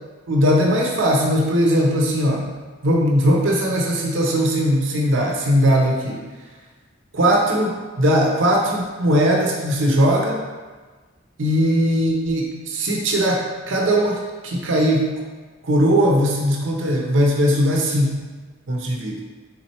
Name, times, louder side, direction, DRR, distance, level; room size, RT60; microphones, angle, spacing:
voice 1, 0.3-2.5 2.8-6.2 7.1-10.4 11.4-15.1 15.6-18.2 18.7-19.2, equal, 85° right, -1 dB, 0.7 m, -19 dB
4.2 x 3.8 x 2.9 m, 1.4 s
head